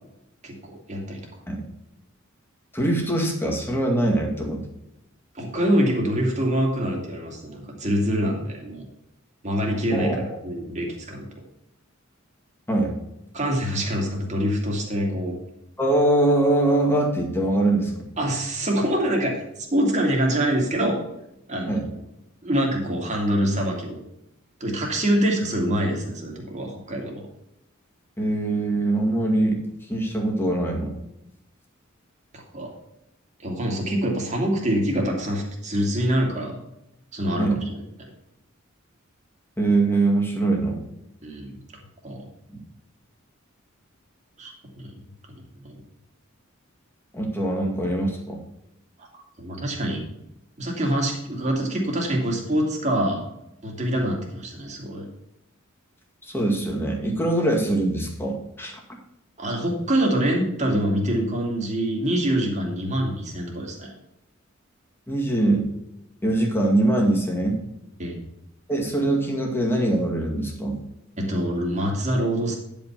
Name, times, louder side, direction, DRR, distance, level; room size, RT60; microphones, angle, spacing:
voice 1, 0.4-1.2 5.3-8.8 9.4-11.3 13.3-15.4 18.2-21.0 21.5-21.7 22.4-24.0 24.6-27.3 32.3-32.7 33.4-36.6 37.1-37.8 41.2-41.6 42.0-42.2 44.4-44.5 44.8-44.9 45.6-45.8 49.4-50.0 50.6-53.2 53.6-55.1 59.4-63.9 68.0-68.2 71.2-72.5, right 1 dB, 35° right, 0 dB, 2.4 m, -25 dB
voice 2, 2.7-4.7 9.9-10.4 12.7-13.0 15.8-18.1 21.7-21.9 28.2-29.6 29.9-31.0 37.4-37.6 39.6-40.8 42.5-42.6 47.1-48.4 56.2-58.8 65.1-65.7 66.2-67.6 68.7-70.8, right 2 dB, 10° left, 0 dB, 2.0 m, -23 dB
10.0 x 5.4 x 5.9 m, 0.85 s
head